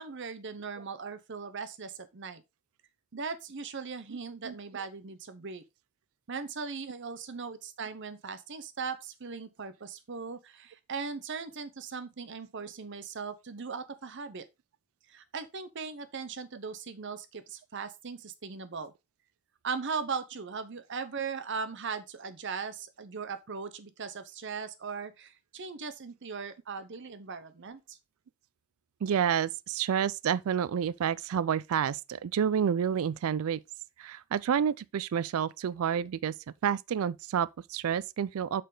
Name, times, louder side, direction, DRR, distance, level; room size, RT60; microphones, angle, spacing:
voice 1, 0.0-2.4 3.1-5.6 6.3-14.4 15.1-18.9 19.6-28.0, right 5 dB, 55° right, 0.7 m, -39 dB
voice 2, 29.0-33.6 34.0-36.3 36.6-38.6, right 8 dB, 70° right, 0.3 m, -29 dB
6.7 x 5.1 x 3.8 m
head